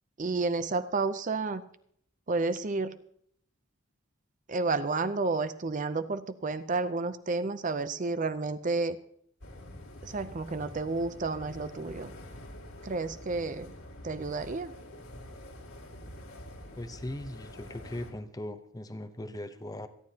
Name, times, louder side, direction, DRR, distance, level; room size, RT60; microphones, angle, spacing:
voice 1, 0.2-1.6 2.3-3.0 4.5-9.0 10.0-12.1 12.8-13.7 14.0-14.7, right 3 dB, 35° right, 12 dB, 0.5 m, -31 dB
sound 1, 9.4-18.1, left 1 dB, 70° left, 2.4 m, -46 dB
voice 2, 16.8-19.9, left 1 dB, 15° left, 10 dB, 0.7 m, -39 dB
27.0 x 9.7 x 2.8 m, 0.65 s
head